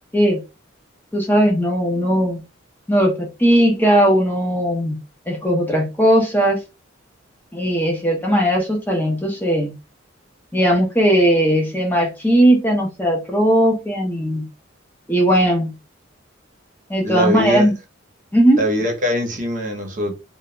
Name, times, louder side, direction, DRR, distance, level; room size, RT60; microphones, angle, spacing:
voice 1, 1.1-2.4 2.9-5.0 5.3-6.6 7.5-9.7 10.5-14.5 15.1-15.7 16.9-17.7 18.3-18.7, equal, 10° left, 0.4 m, -18 dB
voice 2, 17.0-17.7 18.6-20.1, equal, 40° right, 0.6 m, -22 dB
2.1 x 2.0 x 3.6 m
head